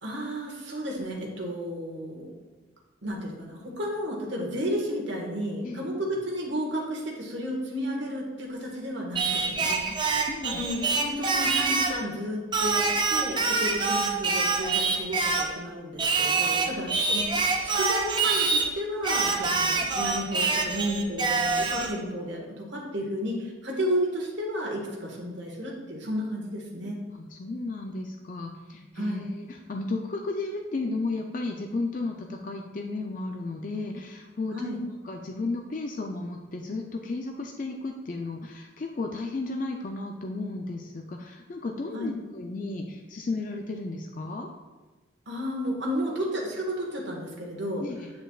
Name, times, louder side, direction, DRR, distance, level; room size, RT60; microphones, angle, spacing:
voice 1, 0.0-2.3 3.0-9.8 10.4-27.0 28.9-29.3 34.5-34.8 41.9-42.1 45.3-47.8, equal, 70° right, -2 dB, 1.4 m, -32 dB
Singing, 9.2-12.0 12.5-15.5 16.0-18.7 19.0-21.9, right 4 dB, 25° right, 0.5 m, -26 dB
voice 2, 9.9-10.6 16.6-17.0 27.1-34.6 35.0-44.5 47.8-48.1, left 3 dB, 40° left, 3 dB, 0.4 m, -34 dB
8.0 x 6.7 x 2.4 m, 1.2 s
head